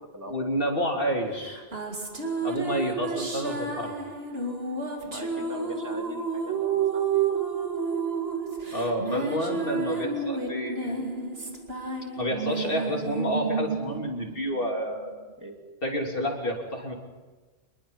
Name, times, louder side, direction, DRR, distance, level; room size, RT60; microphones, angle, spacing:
voice 1, 0.2-1.6 2.4-3.9 8.7-11.1 12.2-15.1 15.8-16.9, equal, 55° left, 1 dB, 3.5 m, -29 dB
sound 1, 1.4-15.1, right 5 dB, 65° right, 2.6 m, -30 dB
voice 2, 5.0-7.3 15.4-15.6, equal, 15° right, 2 dB, 2.8 m, -42 dB
26.5 x 21.5 x 5.6 m, 1.3 s
omnidirectional pair, 1.1 m